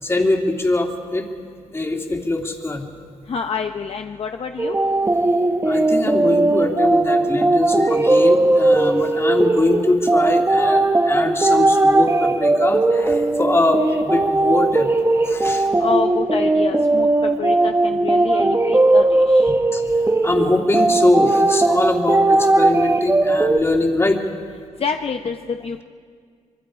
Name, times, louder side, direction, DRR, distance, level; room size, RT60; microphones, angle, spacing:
voice 1, 0.0-1.3 1.7-2.8 5.6-14.9 15.2-15.7 19.5-20.0 20.2-24.2, left 2 dB, 20° left, 2 dB, 2.5 m, -22 dB
voice 2, 3.3-4.8 15.8-19.5 24.8-25.8, left 6 dB, 50° left, 5 dB, 0.8 m, -27 dB
sound 1, 4.6-23.6, right 2 dB, 20° right, 1.2 m, -18 dB
26.0 x 23.0 x 5.0 m, 2.1 s
cardioid pair, 90°, 12 cm